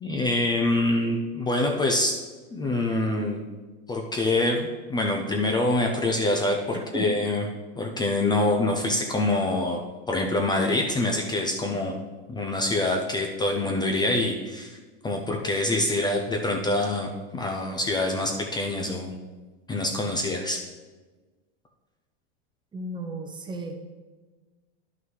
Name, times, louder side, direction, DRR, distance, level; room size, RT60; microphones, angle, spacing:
voice 1, 0.0-2.2 2.5-3.4 3.9-6.6 6.9-7.5 7.8-9.8 10.1-12.0 12.3-14.8 15.0-19.2 19.7-20.6, left 2 dB, 15° left, 1 dB, 0.5 m, -25 dB
voice 2, 6.7-7.1 22.7-23.7, right 2 dB, 15° right, 4 dB, 0.8 m, -34 dB
11.0 x 5.8 x 3.2 m, 1.3 s
supercardioid pair, 130°, 33 cm